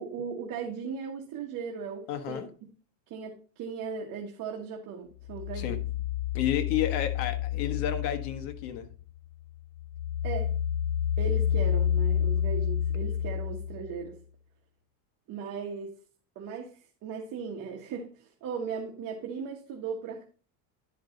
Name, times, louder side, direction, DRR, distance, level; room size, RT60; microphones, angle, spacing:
voice 1, 0.0-2.5 3.1-5.8 10.2-10.5 11.2-14.2 15.3-15.9 16.3-20.2, right 6 dB, 45° right, 1.5 m, -37 dB
voice 2, 2.1-2.5 5.5-5.8 6.3-8.9, left 10 dB, 80° left, 1.4 m, -31 dB
sound 1, 5.2-9.1 9.5-14.0, left 9 dB, 45° left, 0.5 m, -29 dB
10.5 x 5.2 x 3.9 m
cardioid pair, 140°, 43 cm